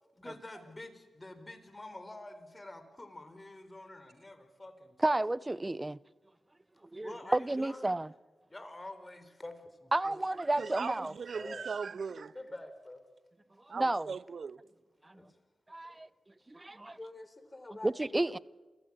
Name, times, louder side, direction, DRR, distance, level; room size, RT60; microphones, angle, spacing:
voice 1, 0.2-5.2 7.0-8.0 8.5-10.8 11.3-11.7 12.3-13.0 15.1-15.3 15.9-16.1 16.9-18.4, left 2 dB, 25° left, 4.4 m, -47 dB
voice 2, 5.0-6.0 6.9-8.1 9.9-11.1 13.7-14.1 15.0-15.2 15.7-16.1 16.5-17.0 17.8-18.4, right 2 dB, 25° right, 0.7 m, -31 dB
voice 3, 10.6-12.3 13.7-14.6, right 5 dB, 70° right, 0.7 m, -39 dB
28.0 x 16.0 x 8.8 m
cardioid pair, 55°, 0 cm